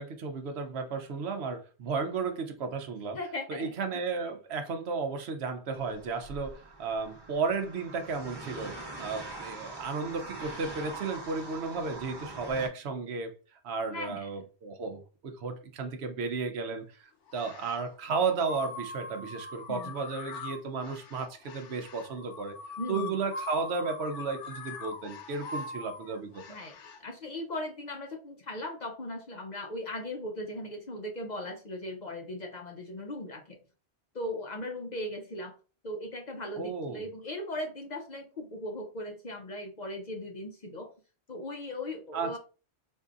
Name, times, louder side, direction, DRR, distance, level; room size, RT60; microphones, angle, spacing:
voice 1, 0.0-3.2 3.5-13.3 13.6-22.6 22.9-26.4 36.6-37.0 42.1-42.4, right 4 dB, 70° right, 0.9 m, -34 dB
voice 2, 3.1-3.7 13.9-14.3 19.7-19.9 22.8-23.2 26.5-33.6 34.1-35.5 35.8-40.9 41.3-42.4, left 1 dB, 50° left, 0.6 m, -38 dB
sound 1, 5.7-12.7, right 2 dB, 25° right, 1.0 m, -43 dB
sound 2, 17.3-17.9 18.4-27.0, left 3 dB, 85° left, 1.0 m, -42 dB
4.5 x 2.6 x 2.4 m
omnidirectional pair, 1.2 m